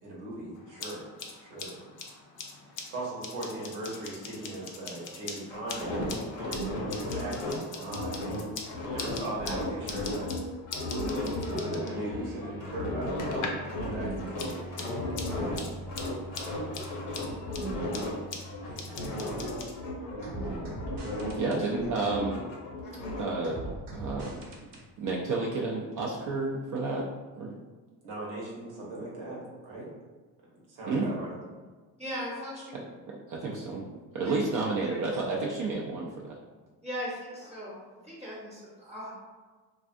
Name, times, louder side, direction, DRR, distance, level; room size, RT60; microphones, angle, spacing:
voice 1, 0.0-1.0 1.4-1.8 2.6-8.2 8.9-10.3 10.8-13.5 13.8-15.6 16.3-16.7 18.7-19.5 21.3-21.6 28.0-29.9 30.7-31.4, right 1 dB, 85° right, -5 dB, 1.0 m, -39 dB
sound 1, 0.6-13.7 14.0-19.7, left 4 dB, 40° left, 0.5 m, -43 dB
sound 2, 5.5-10.4 10.7-15.6 15.9-18.1 18.4-21.5 21.7-23.2, left 1 dB, 90° left, 0.8 m, -35 dB
sound 3, 11.2-19.7 20.2-21.6 23.4-24.8, right 1 dB, 60° right, 0.9 m, -43 dB
voice 2, 21.4-22.4 23.2-23.6 23.9-24.4 25.0-27.1 27.4-27.5 30.9-31.1 33.3-33.8 34.1-36.4, right 3 dB, 40° right, -3 dB, 0.4 m, -30 dB
voice 3, 32.0-32.8 34.2-34.3 34.9-35.2 36.8-39.1, equal, 15° right, -6 dB, 0.9 m, -38 dB
2.4 x 2.3 x 2.5 m, 1.4 s
hypercardioid pair, 60°, 50 cm